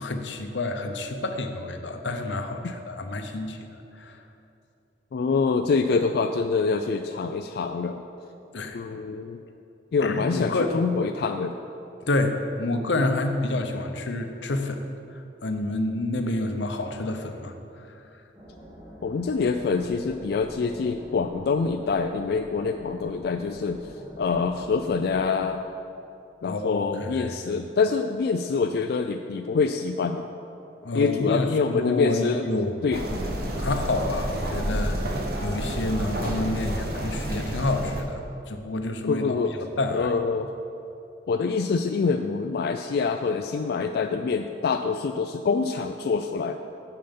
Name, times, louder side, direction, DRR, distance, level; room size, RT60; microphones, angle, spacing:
voice 1, 0.0-3.6 3.9-4.2 8.5-8.8 10.0-10.8 12.0-14.8 15.1-18.1 26.4-27.3 30.8-33.2 33.5-35.1 35.4-40.1, left 2 dB, 90° left, 6 dB, 0.8 m, -29 dB
voice 2, 5.1-8.0 8.7-9.4 9.9-11.5 19.0-23.8 24.2-25.6 26.4-30.3 30.9-32.5 32.8-33.0 39.1-39.5 39.9-40.5 41.3-46.6, left 4 dB, 60° left, 6 dB, 0.3 m, -25 dB
sound 1, 18.3-25.3, equal, 15° right, 2.5 m, -44 dB
sound 2, 32.9-38.0, equal, 55° right, 1.1 m, -29 dB
9.1 x 6.9 x 5.3 m, 2.7 s
head